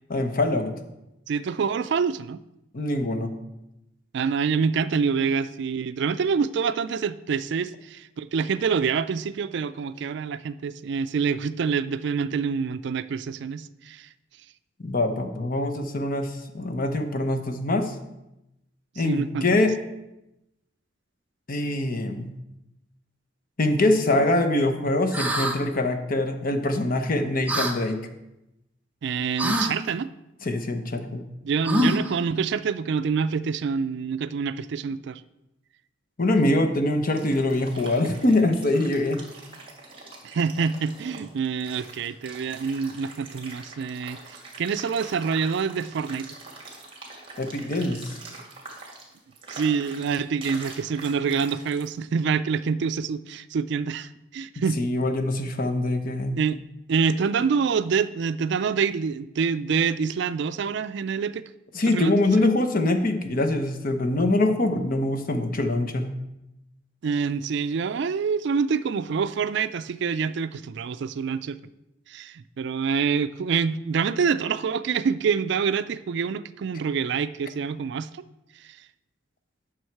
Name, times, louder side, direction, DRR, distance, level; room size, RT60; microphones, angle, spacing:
voice 1, 0.1-0.7 2.7-3.3 14.8-17.9 19.0-19.7 21.5-22.3 23.6-28.1 30.4-31.2 36.2-39.2 47.4-48.2 54.8-56.4 61.7-66.2, left 2 dB, 50° left, 7 dB, 0.9 m, -24 dB
voice 2, 1.3-2.4 4.1-14.1 19.0-19.7 29.0-30.1 31.4-35.2 40.2-44.2 44.6-46.3 49.5-54.8 56.4-56.6 56.9-61.4 61.9-62.5 67.0-71.6 72.1-78.1 78.6-78.8, right 6 dB, 65° right, 14 dB, 0.4 m, -26 dB
sound 1, 25.1-25.6 27.5-27.7 29.4-29.7 31.6-32.2, equal, 10° right, 0.8 m, -24 dB
sound 2, 36.9-51.9, right 3 dB, 30° right, 2.1 m, -44 dB
9.2 x 6.3 x 4.6 m, 0.91 s
head